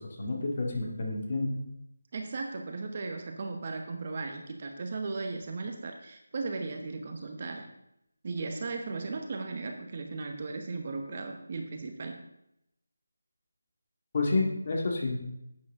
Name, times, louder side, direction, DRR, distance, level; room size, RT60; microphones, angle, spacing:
voice 1, 0.2-1.6 14.1-15.2, left 3 dB, 35° left, 0 dB, 2.0 m, -29 dB
voice 2, 2.1-7.7 8.2-12.2, right 3 dB, 30° right, 4 dB, 0.9 m, -36 dB
11.0 x 8.6 x 3.6 m, 0.82 s
figure-of-eight pair, 170°, 0 cm